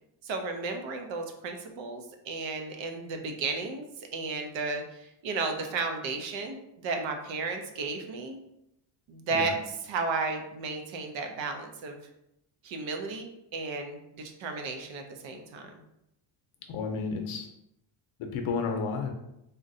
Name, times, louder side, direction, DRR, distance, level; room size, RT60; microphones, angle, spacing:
voice 1, 0.2-3.8 4.1-4.8 5.2-8.4 9.1-9.6 9.8-12.0 12.6-15.8, right 4 dB, 65° right, 4 dB, 0.6 m, -33 dB
voice 2, 16.7-17.5 18.2-19.1, left 5 dB, 80° left, 4 dB, 0.7 m, -31 dB
3.7 x 2.1 x 2.6 m, 0.82 s
cardioid pair, 175°, 49 cm